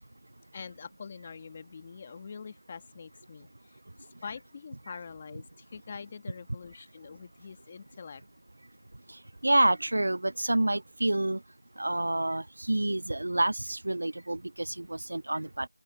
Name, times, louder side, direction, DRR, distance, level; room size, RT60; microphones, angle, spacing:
voice 1, 0.5-8.2, left 5 dB, 10° left, 1.5 m, -45 dB
voice 2, 9.4-11.4 11.8-15.7, right 1 dB, 40° right, 0.3 m, -28 dB
open air
figure-of-eight pair, 180°, 0 cm